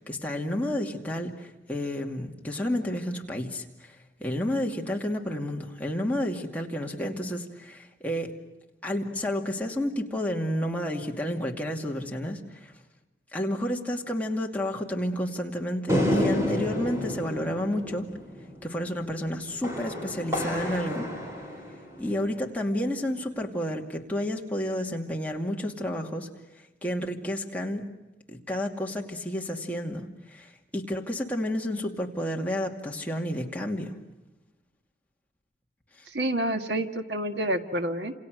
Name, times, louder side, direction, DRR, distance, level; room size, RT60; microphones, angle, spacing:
voice 1, 0.0-8.3 8.8-12.7 13.3-18.1 18.6-21.1 22.0-26.3 26.8-27.8 28.3-33.9, left 1 dB, 10° left, 0 dB, 2.4 m, -31 dB
sound 1, 15.9-22.4, left 1 dB, 15° right, 5.0 m, -30 dB
voice 2, 36.1-38.1, right 1 dB, 70° right, 6 dB, 1.7 m, -28 dB
30.0 x 28.0 x 6.4 m, 1.1 s
head